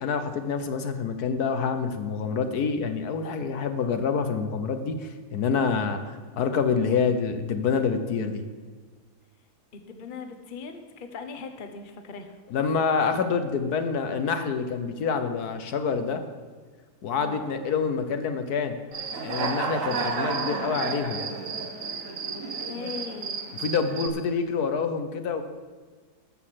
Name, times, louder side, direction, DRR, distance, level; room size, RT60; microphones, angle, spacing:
voice 1, 0.0-8.4 12.5-16.2 17.0-18.8 19.2-21.2 23.6-25.4, left 5 dB, 70° left, 8 dB, 1.4 m, -27 dB
voice 2, 9.7-12.4 17.2-17.6 22.3-23.4, left 5 dB, 35° left, 7 dB, 1.0 m, -39 dB
Human voice / Cricket, 18.9-24.1, right 4 dB, 55° right, 1.4 m, -31 dB
13.0 x 6.4 x 7.5 m, 1.5 s
omnidirectional pair, 1.7 m